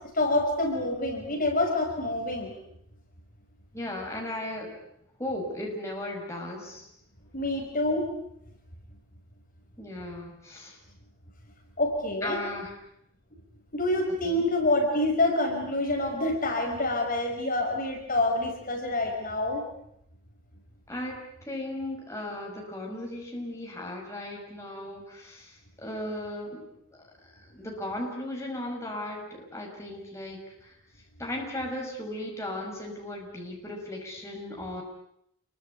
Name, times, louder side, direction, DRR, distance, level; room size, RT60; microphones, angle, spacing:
voice 1, 0.1-2.5 7.3-8.1 11.8-12.4 13.7-19.6, left 2 dB, 40° left, 2 dB, 5.4 m, -27 dB
voice 2, 3.7-4.7 5.2-6.9 9.8-10.8 12.2-12.7 14.2-14.5 20.9-26.6 26.9-27.1 27.4-30.8 31.2-34.8, left 1 dB, 15° left, -1 dB, 6.2 m, -36 dB
28.5 x 23.5 x 8.5 m, 0.75 s
head